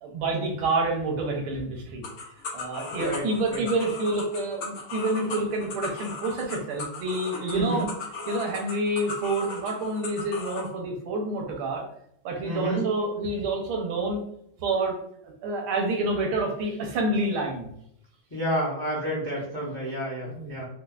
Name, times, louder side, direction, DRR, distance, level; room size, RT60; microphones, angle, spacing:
voice 1, 0.0-2.0 2.5-7.9 8.3-11.8 12.2-14.2 14.6-15.0 15.4-17.7 20.2-20.5, right 2 dB, 85° right, 2 dB, 1.6 m, -28 dB
sound 1, 2.0-10.7, left 4 dB, 65° left, 1.0 m, -37 dB
voice 2, 2.8-3.6 7.5-7.8 12.4-12.8 18.3-20.7, right 1 dB, 30° left, -6 dB, 0.4 m, -30 dB
4.3 x 2.3 x 2.3 m, 0.73 s
omnidirectional pair, 2.3 m